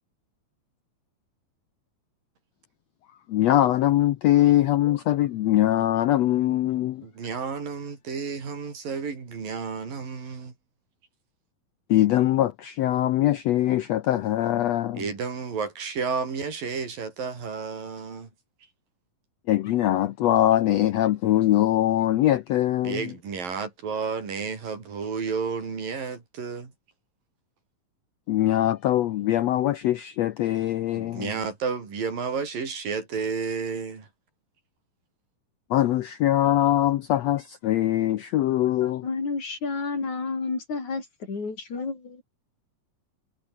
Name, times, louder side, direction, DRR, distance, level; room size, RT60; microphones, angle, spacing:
voice 1, 3.3-7.0 11.9-15.0 19.5-23.1 28.3-31.3 35.7-39.0, left 13 dB, 80° left, 1.5 m, -22 dB
voice 2, 7.0-10.5 14.9-18.3 22.8-26.7 31.0-34.1, right 5 dB, 75° right, 6.6 m, -31 dB
voice 3, 38.8-42.2, left 4 dB, 55° left, 8.0 m, -31 dB
omnidirectional pair, 4.0 m